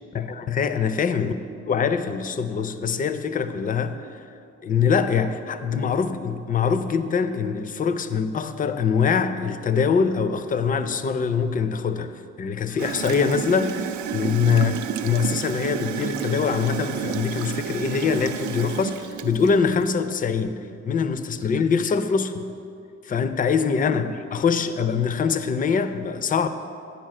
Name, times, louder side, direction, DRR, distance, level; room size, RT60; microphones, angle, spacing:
voice 1, 0.1-1.4 1.7-4.2 4.6-22.5 23.0-26.5, left 6 dB, 30° left, 11 dB, 0.4 m, -24 dB
Gurgling / Toilet flush, 12.8-19.9, right 9 dB, 70° right, 0.5 m, -30 dB
9.1 x 4.2 x 6.5 m, 2.5 s
cardioid pair, 90°, 30 cm